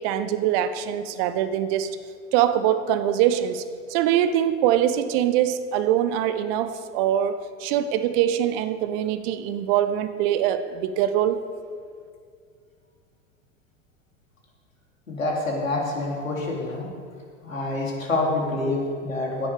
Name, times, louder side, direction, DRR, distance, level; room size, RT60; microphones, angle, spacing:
voice 1, 0.0-1.9 2.3-3.6 3.9-11.4, right 10 dB, 45° right, 12 dB, 1.0 m, -23 dB
voice 2, 15.1-16.9 17.4-19.5, left 2 dB, 85° left, -2 dB, 3.5 m, -27 dB
16.0 x 11.0 x 5.0 m, 2.2 s
figure-of-eight pair, 90°, 39 cm